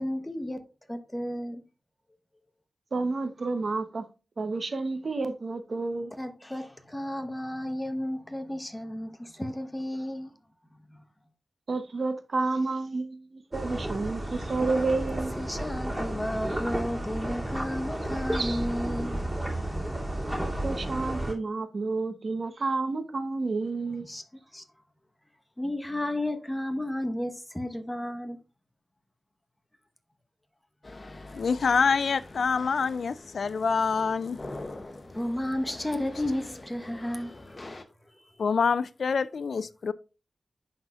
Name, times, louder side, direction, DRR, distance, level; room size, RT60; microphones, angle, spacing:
voice 1, 0.0-1.6 6.2-10.4 10.7-11.0 15.3-19.8 23.9-24.2 24.5-24.6 25.6-28.4 35.1-38.4, left 1 dB, 15° left, 1.1 m, -33 dB
voice 2, 2.9-4.1 4.4-6.1 11.7-15.3 18.3-18.6 20.6-24.1, right 3 dB, 60° right, 0.9 m, -30 dB
sound 1, 13.5-21.3, right 1 dB, 10° right, 2.7 m, -32 dB
sound 2, 30.8-37.8, left 2 dB, 40° left, 0.9 m, -44 dB
voice 3, 31.3-34.4 38.4-39.9, left 5 dB, 80° left, 0.3 m, -26 dB
11.0 x 4.1 x 2.4 m
cardioid pair, 60°, 0 cm